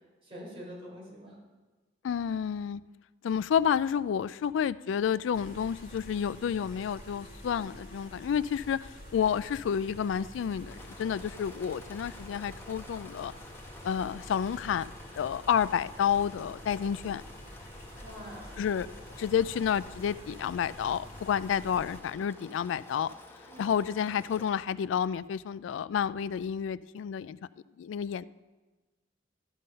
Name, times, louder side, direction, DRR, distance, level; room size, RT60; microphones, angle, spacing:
voice 1, 0.2-1.4 2.3-2.4 18.0-18.6 23.5-23.8, equal, 30° right, -5 dB, 4.0 m, -45 dB
voice 2, 2.0-2.8 3.2-13.3 13.8-14.9 15.2-17.2 18.6-18.9 19.2-23.1 23.6-27.4 27.8-28.2, left 8 dB, 75° left, 18 dB, 0.3 m, -30 dB
sound 1, 5.3-22.0, equal, 45° left, 2.7 m, -48 dB
Engine / Mechanisms, 10.5-24.7, left 1 dB, 10° left, 1.0 m, -51 dB
13.0 x 5.5 x 5.5 m, 1.3 s
head